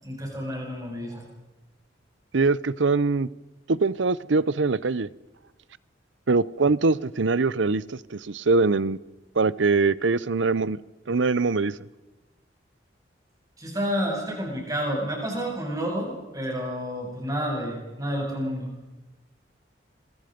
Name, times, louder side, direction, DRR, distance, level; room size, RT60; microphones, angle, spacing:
voice 1, 0.0-1.2 13.6-18.7, equal, 20° right, 7.8 m, -30 dB
voice 2, 2.3-3.3 3.7-5.1 6.3-9.0 9.4-10.8 11.1-11.8, right 3 dB, 80° right, 0.7 m, -23 dB
27.0 x 24.0 x 5.2 m
head